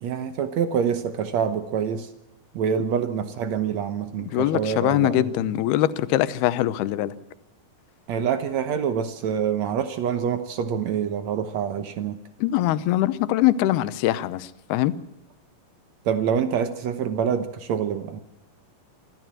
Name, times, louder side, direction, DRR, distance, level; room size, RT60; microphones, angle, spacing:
voice 1, 0.0-2.1 2.5-5.3 8.1-12.2 16.0-18.2, right 7 dB, 85° right, 1.5 m, -26 dB
voice 2, 4.3-7.1 12.4-14.9, left 14 dB, 75° left, 2.7 m, -22 dB
25.0 x 14.5 x 7.5 m
omnidirectional pair, 4.8 m